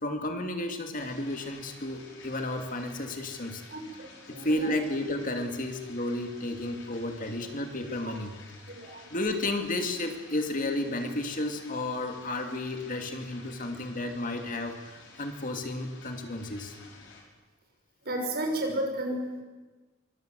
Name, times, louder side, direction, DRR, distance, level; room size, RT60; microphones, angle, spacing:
voice 1, 0.0-3.6 4.3-8.3 9.1-16.7, left 1 dB, 40° left, 4 dB, 2.6 m, -32 dB
sound 1, 0.9-17.2, left 3 dB, 65° left, 5.7 m, -52 dB
voice 2, 3.7-4.7 8.7-9.2 18.0-19.4, right 1 dB, 50° right, 2 dB, 6.1 m, -33 dB
24.5 x 24.0 x 7.8 m, 1.3 s
head